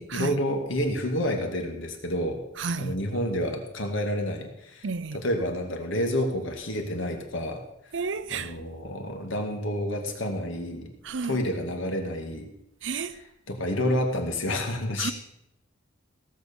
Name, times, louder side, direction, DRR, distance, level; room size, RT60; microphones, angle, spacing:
voice 1, 0.0-2.4 2.8-4.9 5.1-7.6 8.3-10.9 11.3-12.5 12.8-12.9 13.5-15.1, left 1 dB, 80° left, 2.3 m, -29 dB
voice 2, 2.6-2.9 4.8-5.2 7.9-8.5 11.0-11.4 12.8-13.2 15.0-15.1, right 5 dB, 65° right, 0.6 m, -31 dB
17.0 x 6.7 x 7.0 m
head